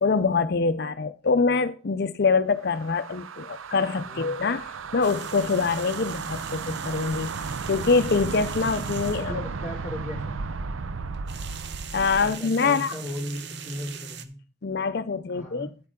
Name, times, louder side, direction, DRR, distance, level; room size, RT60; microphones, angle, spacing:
voice 1, 0.0-4.7 4.9-7.3 7.7-9.3 11.9-13.0 14.6-15.7, left 4 dB, 50° left, 0.5 m, -24 dB
sound 1, 2.6-12.3, right 4 dB, 85° right, 0.6 m, -34 dB
voice 2, 3.9-4.3 9.2-10.4 12.2-14.3 15.3-15.7, left 1 dB, 15° right, 3.5 m, -36 dB
sound 2, 5.0-9.3 11.1-14.2, right 6 dB, 55° right, 0.9 m, -40 dB
10.0 x 8.6 x 3.6 m
head